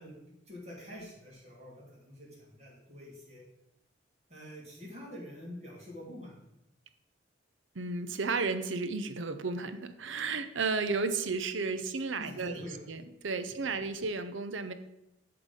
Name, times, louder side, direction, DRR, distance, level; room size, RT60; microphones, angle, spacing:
voice 1, 0.0-3.4 4.3-6.5 12.2-12.8, left 1 dB, 35° right, -4 dB, 2.7 m, -46 dB
voice 2, 7.7-12.6 12.9-14.7, right 4 dB, 80° right, 10 dB, 0.7 m, -33 dB
10.5 x 4.0 x 5.2 m, 0.87 s
head